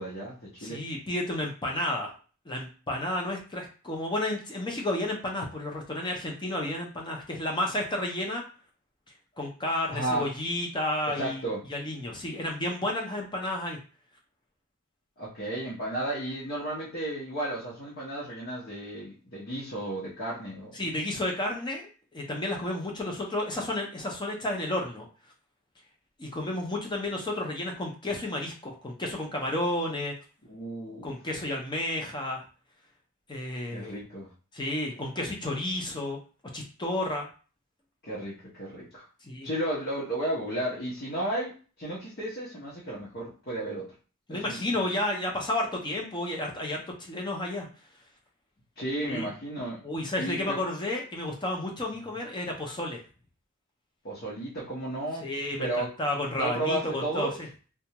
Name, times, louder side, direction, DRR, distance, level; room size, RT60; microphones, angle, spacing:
voice 1, 0.0-0.8 9.9-10.3 11.2-11.6 15.2-20.8 30.5-31.1 33.7-34.3 38.0-39.0 39.4-43.9 44.3-44.8 48.8-49.8 50.2-50.6 54.0-55.3 55.6-55.9 56.4-57.3, right 1 dB, 50° left, -7 dB, 0.9 m, -33 dB
voice 2, 0.6-2.1 2.5-8.4 9.4-11.4 11.7-13.8 20.7-21.8 22.1-25.1 26.2-30.1 31.0-32.4 33.3-34.0 34.5-36.2 36.5-37.3 39.3-39.5 44.3-47.7 49.0-49.3 49.8-53.0 55.2-57.5, left 1 dB, 20° left, 0 dB, 0.6 m, -31 dB
2.4 x 2.2 x 2.9 m, 0.37 s
head